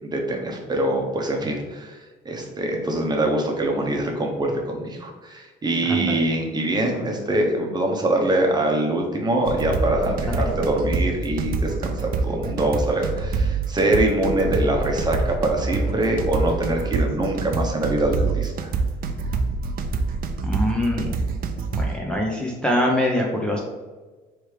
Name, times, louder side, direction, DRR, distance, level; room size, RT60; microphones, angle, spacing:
voice 1, 0.0-18.7, right 1 dB, 25° right, 1 dB, 0.9 m, -24 dB
sound 1, 9.5-22.0, right 4 dB, 60° right, 0.5 m, -25 dB
voice 2, 20.4-21.2 21.7-23.6, left 1 dB, 5° left, -2 dB, 0.6 m, -24 dB
3.3 x 3.2 x 4.8 m, 1.3 s
cardioid pair, 110°, 17 cm